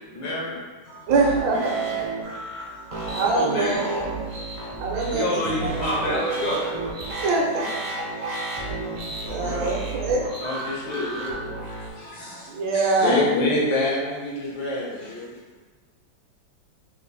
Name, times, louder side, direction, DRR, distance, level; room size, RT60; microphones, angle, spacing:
voice 1, 0.1-0.6 9.2-9.9 10.4-11.5 11.8-12.5 12.7-15.4, left 2 dB, 75° left, -4 dB, 1.8 m, -27 dB
sound 1, 1.1-11.9, right 3 dB, 65° right, 0.4 m, -31 dB
voice 2, 1.1-1.9 3.1-4.2 4.8-5.7 6.1-6.2 7.2-7.8 9.3-10.2 12.5-13.2, right 3 dB, 80° right, -1 dB, 1.5 m, -24 dB
voice 3, 2.2-3.8 4.3-7.2 7.9-8.5 8.8-9.5 12.0-12.6, left 1 dB, 60° left, -4 dB, 1.0 m, -32 dB
4.3 x 2.5 x 4.0 m, 1.3 s
omnidirectional pair, 2.0 m